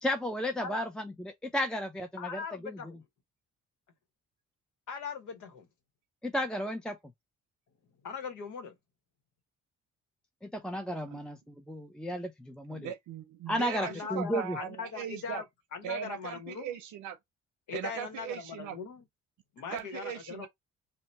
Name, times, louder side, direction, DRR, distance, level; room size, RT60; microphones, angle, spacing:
voice 1, 0.0-0.9 1.2-2.4 6.2-7.0 10.4-12.9 13.5-14.6, equal, 5° left, 0.4 m, -33 dB
voice 2, 2.2-3.0 4.9-5.7 8.0-8.7 13.8-15.4 15.7-16.8 17.7-19.0 19.5-20.5, left 6 dB, 80° left, 1.0 m, -40 dB
voice 3, 12.7-15.4 15.8-17.2 17.7-18.8 19.7-20.5, right 9 dB, 85° right, 0.7 m, -39 dB
2.8 x 2.1 x 4.1 m
cardioid pair, 90°, 30 cm